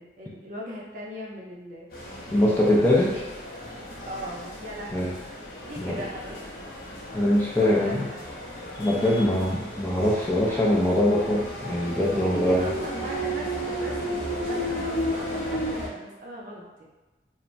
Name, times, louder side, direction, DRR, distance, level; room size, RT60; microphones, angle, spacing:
voice 1, 0.0-3.2 4.1-5.2 5.6-6.4 7.6-8.0 8.9-9.3 12.1-16.8, equal, 50° right, -4 dB, 0.5 m, -39 dB
sound 1, 1.9-15.9, equal, 55° left, 0.6 m, -34 dB
voice 2, 2.3-3.1 4.9-5.1 5.8-6.0 7.1-8.1 8.8-12.7, left 1 dB, 10° left, -5 dB, 0.3 m, -22 dB
3.1 x 2.1 x 2.5 m, 1.1 s
head